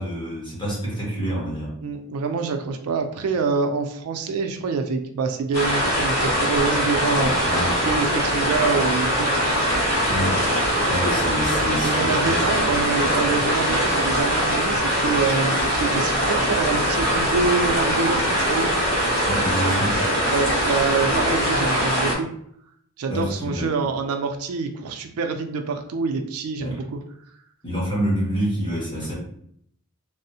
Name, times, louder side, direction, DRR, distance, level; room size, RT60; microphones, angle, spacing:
voice 1, 0.0-1.7 7.2-7.8 10.1-10.5 10.9-12.4 12.6-13.2 19.2-20.1 21.1-21.2 23.1-23.8 26.6-26.8 27.6-29.1, equal, 20° left, -6 dB, 1.2 m, -27 dB
voice 2, 1.8-7.3 7.8-9.4 11.8-18.7 20.3-22.3 23.0-27.0 29.0-29.1, right 4 dB, 70° right, 6 dB, 0.4 m, -26 dB
sound 1, 5.5-22.1, equal, 45° left, 1.4 m, -22 dB
3.3 x 2.0 x 2.7 m, 0.67 s
head